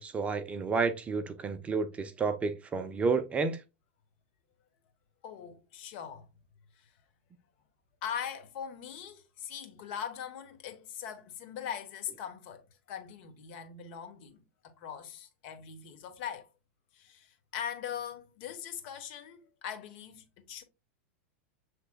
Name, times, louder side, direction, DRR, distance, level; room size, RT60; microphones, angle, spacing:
voice 1, 0.0-3.6, right 4 dB, 20° right, 0.5 m, -30 dB
voice 2, 5.2-6.3 6.8-6.9 8.0-16.5 16.9-20.6, left 8 dB, 55° left, 1.1 m, -41 dB
7.4 x 3.2 x 2.2 m
supercardioid pair, 125°, 7 cm